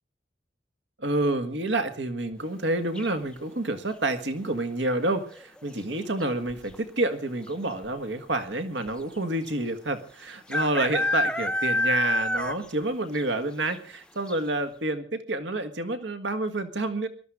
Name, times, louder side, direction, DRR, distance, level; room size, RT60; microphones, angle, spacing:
voice 1, 1.0-17.1, right 2 dB, 75° right, 10 dB, 1.7 m, -28 dB
sound 1, 3.0-3.4 5.2-5.6 5.9-6.0 6.2-6.8 7.5-7.6 7.8-7.9 9.5-9.6 10.5-12.8 13.2-13.3 13.7-13.8 14.3-14.4, left 1 dB, 5° left, 0.7 m, -27 dB
21.0 x 13.0 x 4.9 m, 0.39 s
head